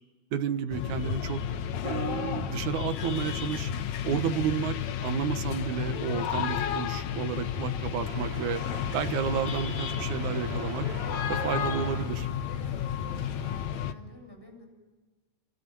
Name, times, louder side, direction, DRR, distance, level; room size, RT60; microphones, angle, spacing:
voice 1, 0.3-1.4 1.8-3.7 4.0-8.6 8.9-10.9 11.3-12.3, right 8 dB, 90° right, 8 dB, 2.7 m, -31 dB
sound 1, 0.7-13.9, left 9 dB, 75° left, 2.5 m, -32 dB
sound 2, 2.8-13.7, right 5 dB, 70° right, 3.6 m, -46 dB
voice 2, 13.0-14.7, left 2 dB, 5° left, 3 dB, 7.5 m, -50 dB
29.0 x 28.5 x 6.2 m, 1.3 s
omnidirectional pair, 3.3 m